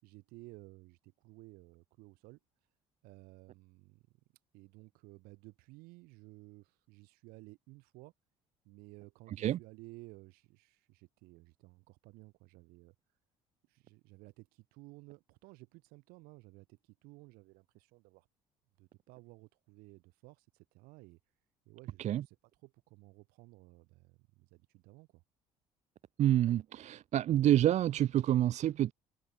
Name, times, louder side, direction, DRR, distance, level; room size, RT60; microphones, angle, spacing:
voice 1, 0.0-2.4 3.0-4.2 4.5-8.1 8.6-13.0 13.7-18.3 18.8-21.2 21.7-22.4 22.6-25.2, right 24 dB, 70° right, 5.9 m, -56 dB
voice 2, 26.2-28.9, right 12 dB, 45° right, 0.5 m, -28 dB
hypercardioid pair, 55°, 16 cm